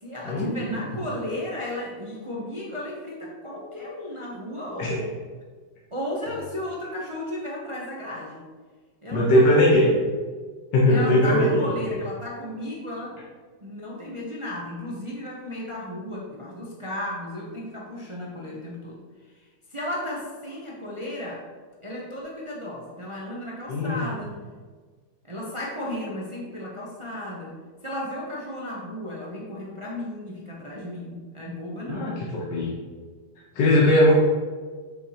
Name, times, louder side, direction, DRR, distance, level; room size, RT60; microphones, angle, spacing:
voice 1, 0.0-5.1 5.9-8.5 9.0-9.8 10.9-13.2 13.6-19.0 19.7-21.4 21.8-24.4 25.3-27.5 27.8-32.3, left 1 dB, 30° right, -4 dB, 0.6 m, -34 dB
voice 2, 9.1-9.9 10.7-11.7 23.7-24.0 31.9-32.7 33.5-34.1, left 1 dB, 75° left, -4 dB, 1.6 m, -19 dB
6.9 x 5.7 x 2.9 m, 1.5 s
omnidirectional pair, 1.9 m